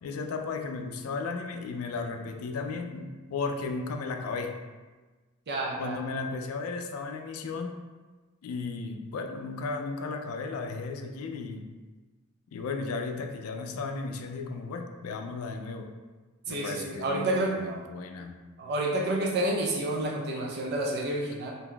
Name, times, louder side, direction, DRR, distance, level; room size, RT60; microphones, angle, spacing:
voice 1, 0.0-4.6 5.8-7.8 8.4-11.8 12.5-15.9 16.5-18.4, left 4 dB, 75° left, 5 dB, 0.3 m, -35 dB
voice 2, 5.5-6.0 16.5-17.8 18.6-21.5, right 1 dB, 50° right, -2 dB, 0.4 m, -29 dB
3.8 x 2.6 x 2.2 m, 1.3 s
head